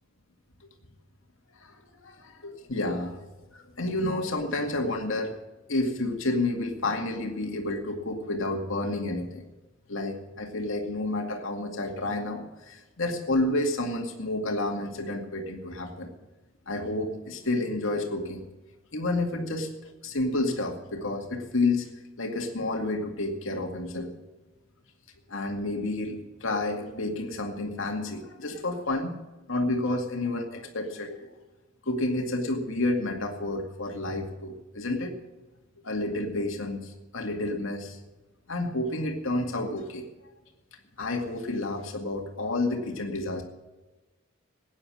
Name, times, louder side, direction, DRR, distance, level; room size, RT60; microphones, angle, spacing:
voice 1, 1.5-3.2 3.5-5.4 5.7-9.5 9.9-16.1 16.7-18.5 18.9-19.7 20.0-21.9 22.2-24.1 25.3-29.1 29.5-31.4 31.9-35.2 35.8-38.0 38.5-40.1 41.0-43.4, left 2 dB, 70° left, 2 dB, 2.2 m, -30 dB
16.0 x 9.8 x 6.3 m, 1.1 s
head